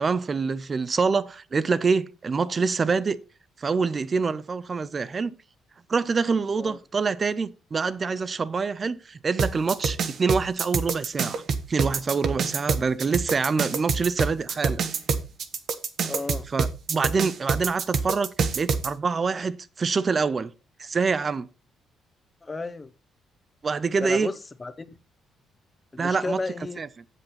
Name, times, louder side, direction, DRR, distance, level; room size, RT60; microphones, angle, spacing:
voice 1, 0.0-3.2 3.6-5.3 5.9-11.4 11.7-14.8 16.5-18.3 18.6-20.5 20.8-21.5 23.6-24.3 26.0-26.4 26.8-26.9, right 5 dB, 30° right, 0.6 m, -26 dB
sound 1, 9.4-18.9, right 5 dB, 55° right, 1.2 m, -26 dB
voice 2, 16.0-16.4 22.4-22.9 24.0-24.9 25.9-26.8, left 3 dB, 20° left, 0.9 m, -33 dB
8.1 x 7.4 x 4.2 m
cardioid pair, 120°, 0 cm